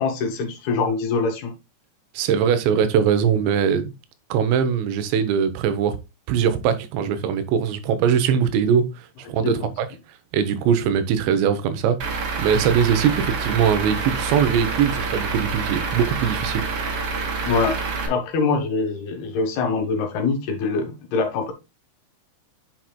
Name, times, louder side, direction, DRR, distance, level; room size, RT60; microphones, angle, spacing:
voice 1, 0.0-1.5 9.4-9.7 17.4-17.8 18.1-21.5, left 4 dB, 70° left, 3.1 m, -24 dB
voice 2, 2.1-3.9 4.3-6.0 6.3-9.9 10.3-16.7, right 8 dB, 90° right, 3.3 m, -21 dB
Truck / Idling, 12.0-18.1, right 4 dB, 60° right, 1.4 m, -27 dB
8.9 x 5.9 x 2.2 m
omnidirectional pair, 5.0 m